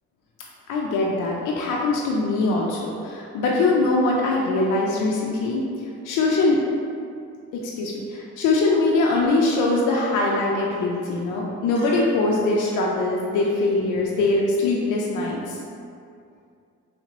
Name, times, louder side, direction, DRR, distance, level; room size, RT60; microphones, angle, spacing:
voice 1, 0.7-5.6 6.0-6.6 7.6-15.6, left 2 dB, 85° left, -3 dB, 0.5 m, -22 dB
3.3 x 2.8 x 2.9 m, 2.4 s
cardioid pair, 90°, 30 cm